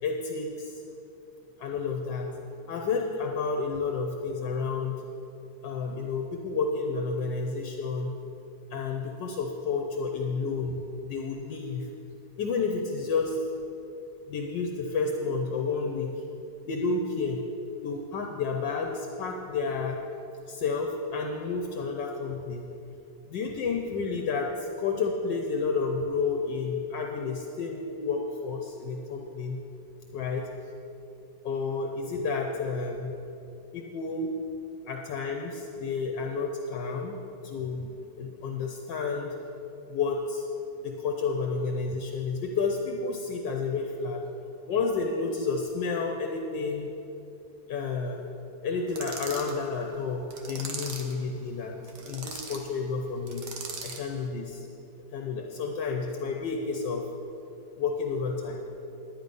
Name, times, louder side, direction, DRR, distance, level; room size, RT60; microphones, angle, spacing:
voice 1, 0.0-0.8 1.6-2.3 2.7-5.0 5.6-8.1 8.7-11.9 12.4-13.4 14.3-16.1 16.7-17.4 17.8-20.0 20.5-22.7 23.3-29.6 30.1-30.4 31.4-33.1 33.7-34.3 34.9-39.3 39.9-40.5 40.8-44.2 44.7-46.9 47.7-48.2 48.6-51.8 52.1-53.4 53.8-54.7 55.1-57.0 57.8-58.6, left 4 dB, 70° left, 2 dB, 1.4 m, -30 dB
sound 1, 48.9-49.6 50.3-51.2 51.8-52.6 53.3-54.1, right 4 dB, 65° right, 1.7 m, -39 dB
10.5 x 9.9 x 5.3 m, 2.8 s
omnidirectional pair, 2.1 m